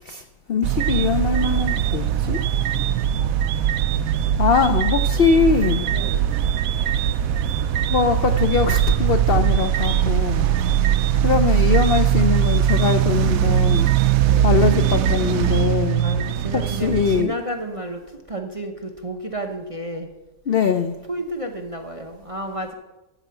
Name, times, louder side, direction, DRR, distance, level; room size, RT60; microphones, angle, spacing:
voice 1, 0.0-2.4 4.4-5.9 7.9-10.5 11.2-13.9 14.4-16.0 16.5-17.3 20.5-21.0, left 6 dB, 70° left, 8 dB, 0.5 m, -22 dB
sound 1, 0.6-17.2, right 10 dB, 70° right, 0.9 m, -20 dB
voice 2, 5.8-6.4 9.5-9.7 11.1-11.3 14.3-14.6 15.2-20.1 21.1-22.7, right 1 dB, 30° right, 3 dB, 0.6 m, -32 dB
13.5 x 4.9 x 7.9 m, 1.0 s
omnidirectional pair, 1.7 m